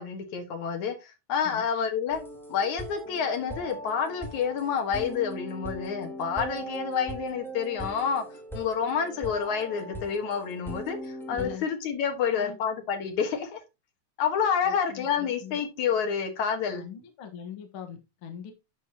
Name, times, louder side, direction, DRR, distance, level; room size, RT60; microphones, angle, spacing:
voice 1, 0.0-2.2 2.5-8.3 8.5-13.6 14.2-16.8, left 7 dB, 65° left, 5 dB, 2.7 m, -29 dB
voice 2, 1.4-1.8 11.3-11.6 12.2-12.6 14.6-15.6 16.7-18.5, left 8 dB, 50° left, 4 dB, 1.8 m, -43 dB
sound 1, 2.1-11.6, right 1 dB, ahead, 1.5 m, -39 dB
11.0 x 6.9 x 2.9 m, 0.26 s
omnidirectional pair, 3.7 m